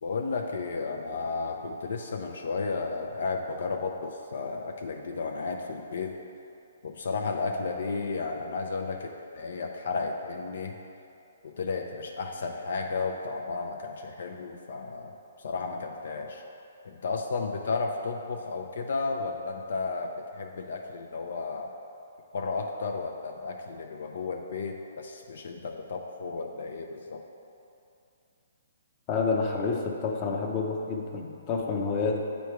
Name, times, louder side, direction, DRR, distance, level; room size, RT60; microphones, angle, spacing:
voice 1, 0.0-6.2 6.8-10.8 11.4-15.1 15.4-16.4 16.8-21.7 22.3-27.2, left 4 dB, 70° left, 2 dB, 0.5 m, -33 dB
voice 2, 29.1-32.2, left 4 dB, 30° left, 0 dB, 0.7 m, -28 dB
8.2 x 3.1 x 4.6 m, 2.7 s
hypercardioid pair, 150°, 0 cm